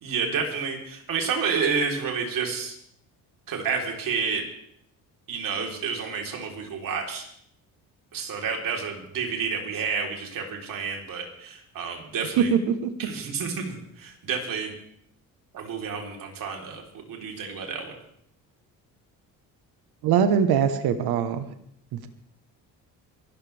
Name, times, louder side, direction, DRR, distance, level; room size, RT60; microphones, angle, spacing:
voice 1, 0.0-2.8 3.5-4.4 5.3-7.3 8.1-12.5 13.0-14.7 15.5-16.8 17.1-17.9, right 5 dB, 60° right, 1 dB, 3.9 m, -30 dB
voice 2, 12.4-12.9 20.0-21.5, right 7 dB, 85° right, 9 dB, 1.3 m, -22 dB
22.5 x 13.5 x 3.5 m, 0.68 s
cardioid pair, 110°, 37 cm